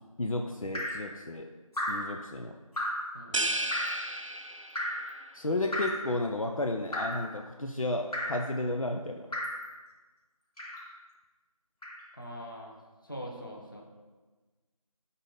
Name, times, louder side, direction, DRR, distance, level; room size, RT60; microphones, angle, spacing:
voice 1, 0.2-1.5 1.9-2.6 5.3-9.3, left 2 dB, 65° left, 3 dB, 0.6 m, -32 dB
Drip, 0.7-1.1 1.7-2.1 2.8-3.1 3.7-4.0 4.8-5.1 5.7-6.1 6.9-7.3 8.1-8.5 9.3-9.6 10.6-10.9 11.8-12.0, equal, 85° left, 2.4 m, -34 dB
voice 2, 3.1-3.6 12.1-12.8 13.0-13.8, equal, 35° left, 0 dB, 1.0 m, -42 dB
sound 1, 3.3-5.0, right 1 dB, 60° right, 0.5 m, -33 dB
11.5 x 4.1 x 3.8 m, 1.3 s
figure-of-eight pair, 180°, 19 cm